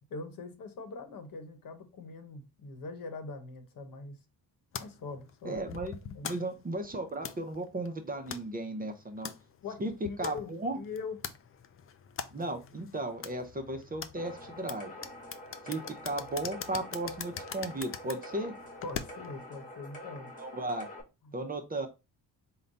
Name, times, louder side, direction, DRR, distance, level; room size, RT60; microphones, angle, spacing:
voice 1, 0.1-4.2 4.8-5.6 6.1-6.3 9.6-11.2 18.8-20.4 21.2-21.3, left 4 dB, 60° left, 1.0 m, -42 dB
sound 1, 4.7-19.4, left 8 dB, 35° left, 0.4 m, -44 dB
voice 2, 5.4-6.0 6.2-9.3 9.8-10.8 12.3-14.9 15.6-18.5 20.4-20.9 21.3-21.9, right 2 dB, 25° right, 0.6 m, -35 dB
sound 2, 14.2-21.0, left 1 dB, 20° left, 1.2 m, -46 dB
3.8 x 2.2 x 3.9 m
cardioid pair, 85°, 38 cm